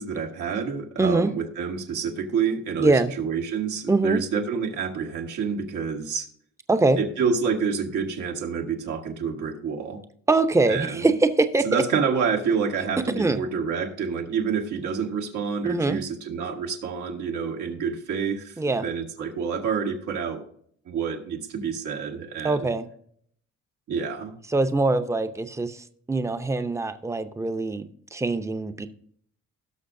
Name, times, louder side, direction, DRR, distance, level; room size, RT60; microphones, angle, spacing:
voice 1, 0.0-6.3 7.0-10.0 10.7-11.1 11.6-20.4 20.9-22.7 23.9-24.3, right 6 dB, 80° right, 2 dB, 1.6 m, -28 dB
voice 2, 1.0-1.3 2.8-3.1 3.9-4.2 6.7-7.0 10.3-11.8 13.2-13.4 15.7-16.0 18.6-18.9 22.4-22.9 24.5-28.9, right 3 dB, 10° right, 9 dB, 0.6 m, -23 dB
17.0 x 6.2 x 2.6 m, 0.63 s
cardioid pair, 90°, 30 cm